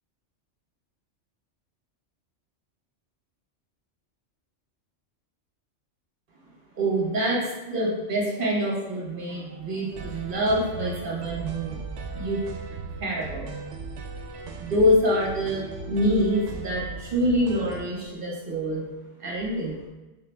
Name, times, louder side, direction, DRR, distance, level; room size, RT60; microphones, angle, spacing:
voice 1, 6.7-11.8 12.1-12.4 13.0-13.5 14.6-18.9 19.2-19.8, equal, 50° right, -3 dB, 1.2 m, -25 dB
sound 1, 9.9-17.8, right 4 dB, 80° right, 0.9 m, -38 dB
5.6 x 3.7 x 2.2 m, 1.1 s
omnidirectional pair, 1.2 m